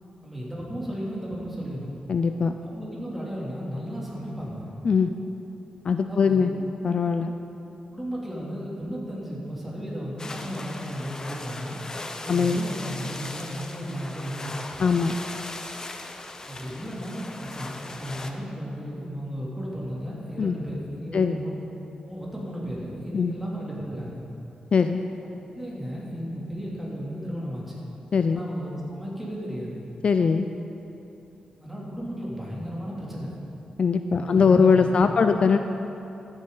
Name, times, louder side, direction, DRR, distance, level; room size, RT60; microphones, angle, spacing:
voice 1, 0.2-1.9 2.6-4.7 6.1-6.5 7.9-11.8 12.2-14.8 16.4-21.6 22.1-24.2 25.5-27.8 28.3-29.8 31.6-33.4 34.1-35.2, equal, 10° right, -6 dB, 2.9 m, -34 dB
voice 2, 2.1-2.6 4.8-5.1 5.8-6.5 6.8-7.3 12.3-12.6 14.8-15.2 20.4-20.6 21.1-21.4 23.1-23.3 24.7-25.0 28.1-28.4 30.0-30.5 33.8-35.6, left 5 dB, 55° left, 7 dB, 0.4 m, -21 dB
sound 1, 10.2-18.3, left 2 dB, 30° left, 0.7 m, -38 dB
14.0 x 8.9 x 4.0 m, 2.9 s
cardioid pair, 90°, 2 cm